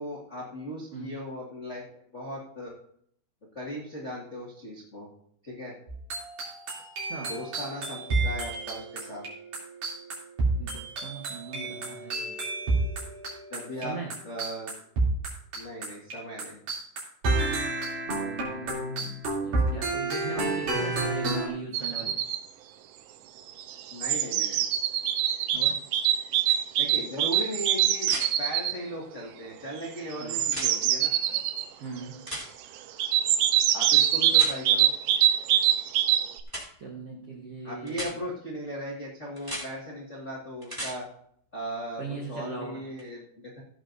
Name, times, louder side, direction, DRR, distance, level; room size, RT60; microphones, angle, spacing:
voice 1, 0.0-2.7 3.5-5.1 5.4-5.8 7.2-9.2 13.5-14.0 14.2-14.7 15.6-16.6 23.9-24.7 26.8-28.1 28.4-31.1 33.7-34.9 37.6-41.1 41.5-43.6, equal, 80° left, -4 dB, 0.6 m, -37 dB
sound 1, 5.9-16.1 16.4-21.5, right 2 dB, 50° right, 4.3 m, -30 dB
voice 2, 7.0-7.3 10.5-12.4 13.8-14.1 18.1-22.2 25.5-25.8 30.2-30.4 31.2-31.4 31.8-32.2 36.8-38.2 42.0-42.8, right 4 dB, 70° right, -2 dB, 1.4 m, -39 dB
sound 2, 21.7-22.4 23.5-28.8 30.1-31.6 33.0-36.4, right 11 dB, 90° right, 2.9 m, -24 dB
sound 3, 26.5-26.6 28.0-28.3 30.4-30.7 32.3-32.5 34.3-34.5 36.5-36.6 37.9-38.1 39.4-39.7 40.6-40.9 43.0-43.1, equal, 5° right, 2.1 m, -35 dB
15.5 x 9.0 x 2.7 m, 0.66 s
omnidirectional pair, 4.9 m